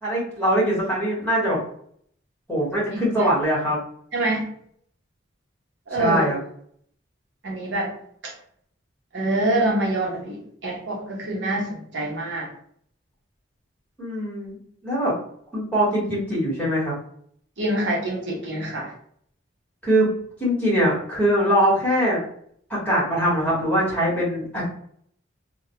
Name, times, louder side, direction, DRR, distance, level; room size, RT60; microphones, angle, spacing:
voice 1, 0.0-1.6 2.5-3.8 5.9-6.4 14.0-14.6 14.8-15.1 15.5-17.0 19.8-20.1 20.4-22.2 22.7-24.7, equal, 5° left, -8 dB, 1.0 m, -22 dB
voice 2, 2.7-3.3 4.1-4.5 5.9-6.3 7.4-7.9 8.2-8.3 9.1-12.5 17.6-18.9, right 1 dB, 60° right, -2 dB, 0.7 m, -26 dB
2.1 x 2.1 x 2.7 m, 0.63 s
head